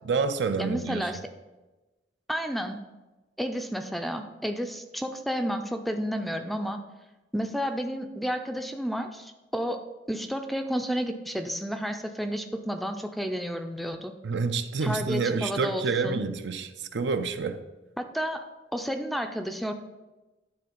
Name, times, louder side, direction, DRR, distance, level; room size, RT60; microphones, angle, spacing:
voice 1, 0.0-1.1 14.2-17.6, right 4 dB, 65° right, 0.5 m, -28 dB
voice 2, 0.6-1.2 2.3-2.8 3.4-6.8 7.3-14.1 14.8-16.2 18.0-18.4 18.7-19.7, equal, ahead, 0.4 m, -31 dB
10.0 x 3.8 x 5.1 m
head